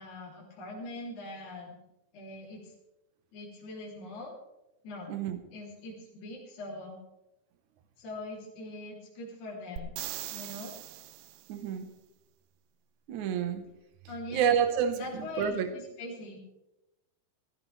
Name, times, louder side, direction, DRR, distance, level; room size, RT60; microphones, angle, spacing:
voice 1, 0.0-1.8 2.1-2.7 3.3-4.3 4.8-5.1 5.5-7.0 8.0-10.0 10.3-10.8 14.1-14.5 15.0-16.4, left 2 dB, 50° left, -4 dB, 4.3 m, -42 dB
voice 2, 5.1-5.4 11.5-11.9 13.1-13.7 14.3-15.7, right 8 dB, 65° right, 8 dB, 2.1 m, -29 dB
sound 1, 9.8-11.6 15.4-15.5, right 13 dB, 80° right, 2.6 m, -41 dB
18.0 x 15.0 x 3.4 m, 0.92 s
omnidirectional pair, 4.8 m